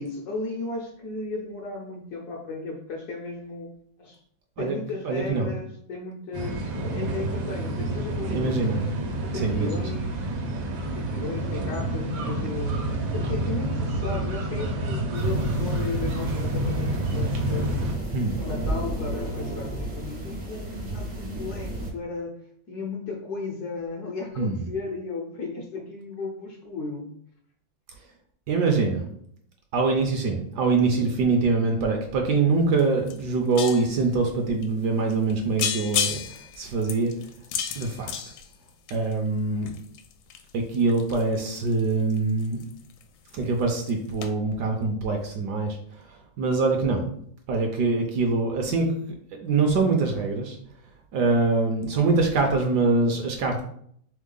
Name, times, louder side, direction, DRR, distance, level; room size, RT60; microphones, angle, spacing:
voice 1, 0.0-3.7 4.0-4.2 4.6-8.5 9.2-10.3 10.8-17.9 18.4-22.4 22.7-27.1, left 3 dB, 65° left, 1 dB, 1.0 m, -35 dB
voice 2, 5.0-5.5 8.3-8.8 9.3-9.8 18.1-18.4 24.4-24.7 28.5-29.0 29.7-37.1 37.8-38.1 38.9-39.7 40.5-42.6 43.3-47.0 47.5-48.9 49.3-50.6 51.1-53.6, right 3 dB, 70° right, 3 dB, 1.1 m, -24 dB
sound 1, 6.3-18.0, right 1 dB, 85° right, 1.6 m, -28 dB
sound 2, 15.1-21.9, right 1 dB, 40° right, 0.6 m, -33 dB
sound 3, 32.8-32.9 33.1-34.0 34.6-34.7 35.1-35.3 35.6-39.1 39.6-43.0 43.3-43.6 43.9-44.0 44.2-44.3, left 8 dB, 85° left, 1.3 m, -32 dB
3.5 x 3.5 x 3.7 m, 0.66 s
omnidirectional pair, 2.1 m